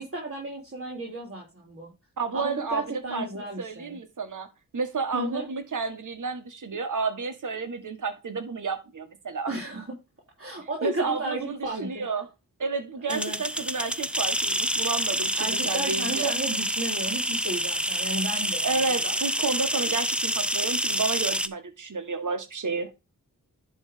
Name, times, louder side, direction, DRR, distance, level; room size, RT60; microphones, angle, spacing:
voice 1, 0.0-1.9 2.3-4.0 5.1-5.5 9.5-9.8 10.4-12.1 13.1-13.4 15.4-18.7 19.0-19.2, right 2 dB, 40° right, 3.5 m, -33 dB
voice 2, 2.2-3.3 3.6-4.5 4.7-9.6 10.8-12.3 12.6-16.3 18.6-22.9, right 4 dB, 60° right, 1.9 m, -31 dB
sound 1, 13.1-21.5, equal, 5° right, 0.7 m, -27 dB
10.5 x 3.6 x 5.2 m
wide cardioid pair, 90°, 35 cm